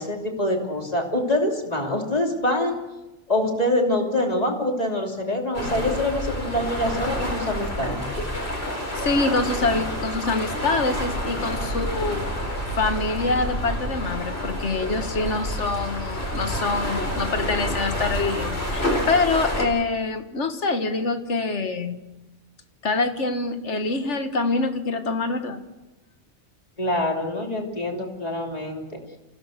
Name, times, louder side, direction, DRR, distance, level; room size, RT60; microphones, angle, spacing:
voice 1, 0.0-2.8 3.3-8.1 26.8-28.8, left 1 dB, 35° left, 1 dB, 3.2 m, -25 dB
sound 1, 5.5-19.6, equal, 60° left, 4.8 m, -28 dB
voice 2, 9.0-12.5 12.7-22.0 22.8-25.6, left 3 dB, 85° left, 8 dB, 1.9 m, -25 dB
28.0 x 16.5 x 6.6 m, 1.1 s
omnidirectional pair, 1.2 m